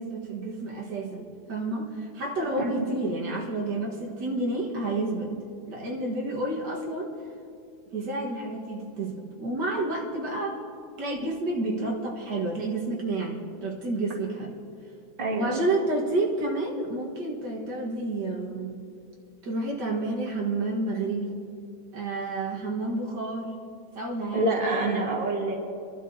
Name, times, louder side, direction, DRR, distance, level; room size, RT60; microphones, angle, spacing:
voice 1, 0.0-5.3 5.7-7.1 7.9-10.6 11.0-14.6 15.3-18.7 19.4-21.4 21.9-23.5 24.0-25.1, right 2 dB, 85° right, -2 dB, 2.3 m, -30 dB
voice 2, 15.2-15.6 24.3-25.6, right 2 dB, 30° right, -1 dB, 1.9 m, -27 dB
25.5 x 12.0 x 2.8 m, 2.6 s
omnidirectional pair, 1.8 m